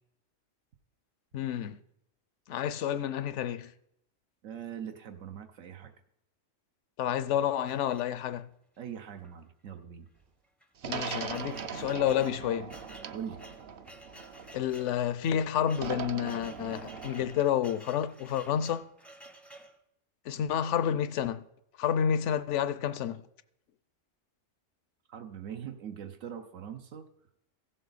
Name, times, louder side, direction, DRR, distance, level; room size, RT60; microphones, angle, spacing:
voice 1, 1.3-1.8 2.5-3.7 7.0-8.5 10.9-12.7 14.5-18.8 20.3-21.4 21.8-23.2, left 9 dB, 70° left, 0.9 m, -30 dB
voice 2, 4.4-5.9 8.8-10.1 13.1-13.4 25.1-27.1, right 8 dB, 80° right, 1.1 m, -42 dB
sound 1, 7.7-8.5 9.2-9.4 9.7-9.8 10.4-19.8, right 1 dB, ahead, 0.5 m, -52 dB
sound 2, 10.8-14.9 15.8-17.4, right 6 dB, 55° right, 0.7 m, -40 dB
15.5 x 7.6 x 4.0 m
omnidirectional pair, 1.3 m